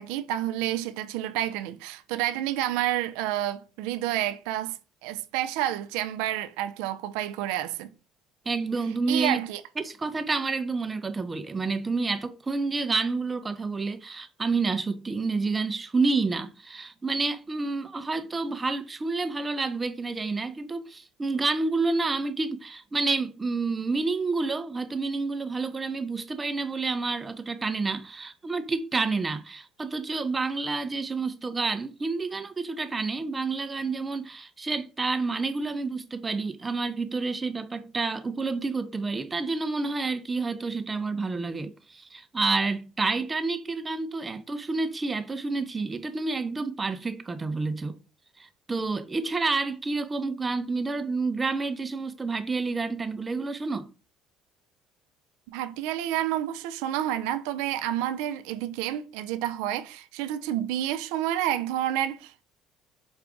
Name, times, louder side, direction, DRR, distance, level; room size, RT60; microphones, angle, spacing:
voice 1, 0.0-7.9 9.1-9.6 55.5-62.4, right 12 dB, 90° right, 0.3 m, -29 dB
voice 2, 8.5-9.4 9.8-48.0 48.4-53.9, right 3 dB, 20° right, 0.5 m, -29 dB
4.8 x 2.5 x 3.4 m
supercardioid pair, 95°, 0 cm